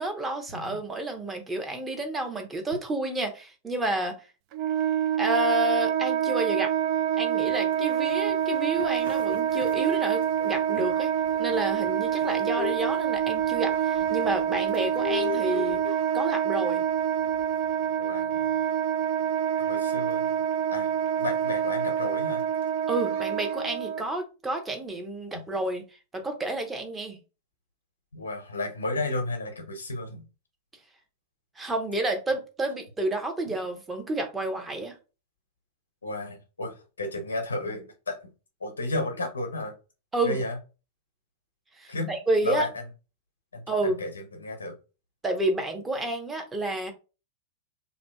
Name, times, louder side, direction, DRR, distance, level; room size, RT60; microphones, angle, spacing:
voice 1, 0.0-4.3 5.2-6.7 7.2-11.1 11.4-15.8 16.1-16.8 22.9-25.8 26.1-27.2 31.6-35.0 40.1-40.4 41.8-42.7 43.7-44.0 45.2-46.9, right 2 dB, 15° right, 0.8 m, -30 dB
Wind instrument woodwind instrument, 4.5-24.0, right 9 dB, 45° right, 0.3 m, -26 dB
sound 1, 7.4-24.1, right 2 dB, 65° right, 1.0 m, -51 dB
sound 2, 8.8-15.9, left 12 dB, 40° left, 0.4 m, -38 dB
voice 2, 18.0-18.5 19.7-20.3 20.7-20.9 21.2-22.4 28.1-30.2 36.0-38.2 38.6-39.8 40.2-40.6 41.9-42.1 42.4-42.7 43.5-44.7, left 2 dB, 80° left, 0.7 m, -32 dB
2.7 x 2.5 x 2.2 m
figure-of-eight pair, 95°, 0 cm